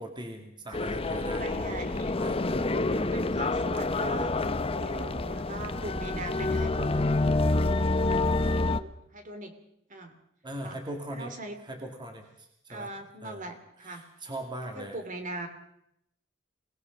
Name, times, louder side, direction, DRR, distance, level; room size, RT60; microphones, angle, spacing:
voice 1, 0.0-1.4 2.1-2.4 10.4-11.3 11.6-13.0 13.2-13.5 13.8-15.0, right 1 dB, 25° right, 3 dB, 2.4 m, -40 dB
sound 1, 0.7-8.8, left 2 dB, 30° left, 0.8 m, -27 dB
voice 2, 0.7-2.1 2.5-4.4 4.6-7.1 8.5-9.5 9.9-10.1 10.6-10.8 11.1-11.6 12.7-14.0 14.8-15.5, right 2 dB, 40° right, 7 dB, 2.8 m, -40 dB
26.0 x 19.0 x 5.4 m, 0.77 s
head